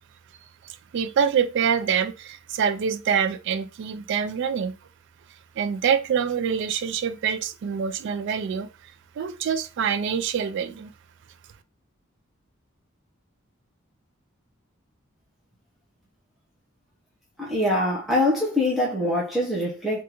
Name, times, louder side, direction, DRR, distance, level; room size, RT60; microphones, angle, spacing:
voice 1, 0.9-4.8 5.6-8.7 9.2-10.9, right 7 dB, 60° right, 0.3 m, -25 dB
voice 2, 17.4-20.0, left 1 dB, ahead, 0.7 m, -24 dB
3.4 x 2.5 x 2.9 m
head